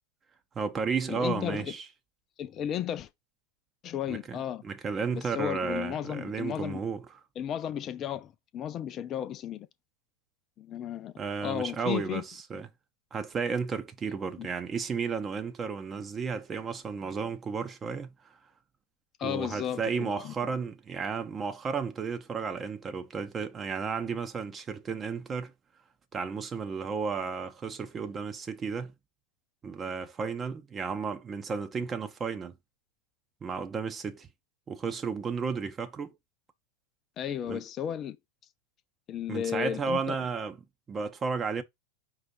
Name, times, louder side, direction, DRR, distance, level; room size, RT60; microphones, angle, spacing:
voice 1, 0.5-1.8 4.1-7.0 11.2-12.7 13.1-18.4 19.2-25.5 26.1-28.9 29.6-32.6 33.4-34.3 34.7-36.1 37.5-37.6 39.3-40.6 40.9-41.6, right 5 dB, 25° right, 0.8 m, -33 dB
voice 2, 1.1-1.7 2.4-3.1 3.8-4.6 5.1-6.8 7.4-9.7 10.6-11.1 11.4-12.2 14.4-14.5 19.2-20.3 37.2-38.2 39.1-40.2, left 10 dB, 35° left, 0.4 m, -34 dB
5.1 x 2.4 x 4.0 m
hypercardioid pair, 95°, 0 cm